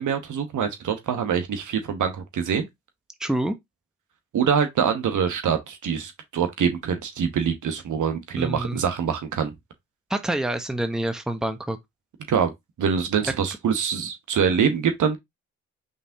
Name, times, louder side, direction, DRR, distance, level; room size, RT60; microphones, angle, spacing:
voice 1, 0.0-2.7 4.3-9.5 12.3-12.5 12.8-15.2, right 7 dB, 65° right, 1.2 m, -24 dB
voice 2, 3.2-3.5 8.4-8.8 10.1-11.8, right 1 dB, ahead, 0.9 m, -27 dB
5.3 x 3.4 x 2.8 m
supercardioid pair, 55°, 33 cm